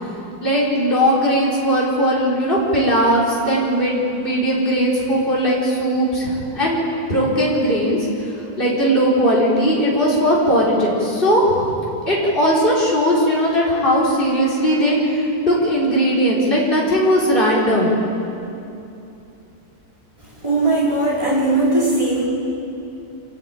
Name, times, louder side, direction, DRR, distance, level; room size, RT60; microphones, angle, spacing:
voice 1, 0.4-6.8 7.1-18.0, equal, 30° left, -6 dB, 4.7 m, -18 dB
voice 2, 20.4-22.2, right 2 dB, 15° right, -6 dB, 5.2 m, -18 dB
27.0 x 13.5 x 9.1 m, 2.8 s
omnidirectional pair, 1.7 m